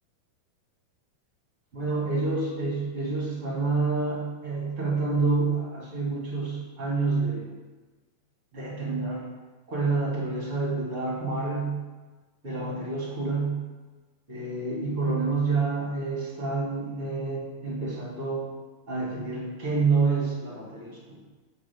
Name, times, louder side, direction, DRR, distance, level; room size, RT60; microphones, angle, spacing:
voice 1, 1.7-7.5 8.5-9.2 9.7-11.8 12.4-13.6 14.3-18.4 18.9-21.2, right 4 dB, 30° right, -5 dB, 1.5 m, -28 dB
5.8 x 5.8 x 7.0 m, 1.3 s
omnidirectional pair, 4.7 m